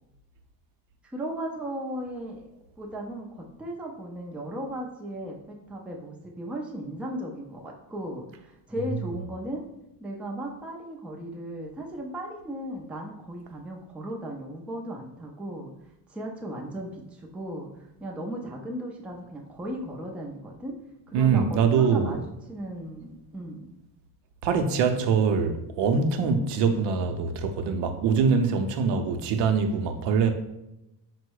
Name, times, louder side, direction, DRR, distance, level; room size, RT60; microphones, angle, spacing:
voice 1, 1.0-2.5 2.8-9.6 10.0-15.7 16.1-17.7 18.0-20.7 21.1-22.2 22.5-23.7, right 1 dB, 5° right, 0.4 m, -36 dB
voice 2, 21.1-22.2 24.4-30.3, right 5 dB, 90° right, 0.7 m, -23 dB
4.5 x 2.1 x 4.6 m
cardioid pair, 145°, 42 cm